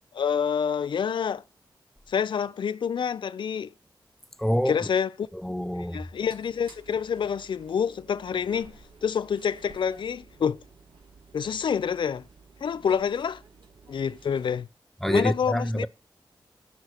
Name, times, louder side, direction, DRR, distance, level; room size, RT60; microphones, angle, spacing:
voice 1, 0.1-1.4 2.1-3.7 4.7-5.3 5.9-8.7 9.0-10.6 11.3-12.2 12.6-13.4 13.9-14.7 15.1-15.9, left 7 dB, 80° left, 0.5 m, -27 dB
voice 2, 4.4-4.8 5.4-6.0 15.0-15.9, equal, 5° left, 0.7 m, -26 dB
sound 1, 6.1-14.6, right 4 dB, 90° right, 2.7 m, -53 dB
11.0 x 5.6 x 8.0 m
wide cardioid pair, 85°, 8 cm